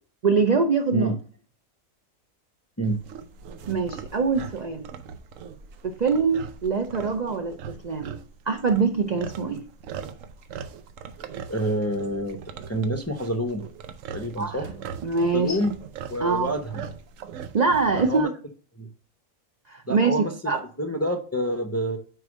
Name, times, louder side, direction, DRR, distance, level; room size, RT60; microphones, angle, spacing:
voice 1, 0.2-1.1 3.7-4.9 5.8-8.2 8.5-9.6 14.4-14.6 15.0-15.6 16.2-16.5 17.5-18.3 19.7-20.1 20.5-20.6, right 4 dB, 55° right, 0.4 m, -23 dB
sound 1, 2.8-18.2, right 7 dB, 75° right, 1.0 m, -40 dB
voice 2, 11.5-12.4 12.7-13.7 14.1-14.7 15.3-15.8 16.1-16.9 18.0-18.3 18.8-18.9 19.9-20.5 20.8-22.0, right 1 dB, 20° left, 0.4 m, -27 dB
4.8 x 4.6 x 6.1 m
omnidirectional pair, 1.4 m